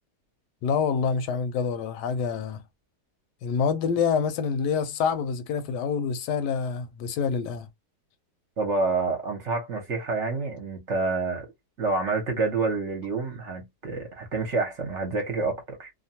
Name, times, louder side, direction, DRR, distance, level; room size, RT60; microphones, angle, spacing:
voice 1, 0.6-2.6 3.4-7.7, left 6 dB, 85° left, 1.2 m, -26 dB
voice 2, 8.6-11.5 11.8-15.9, right 3 dB, 55° right, 1.0 m, -28 dB
2.8 x 2.2 x 2.7 m
omnidirectional pair, 1.8 m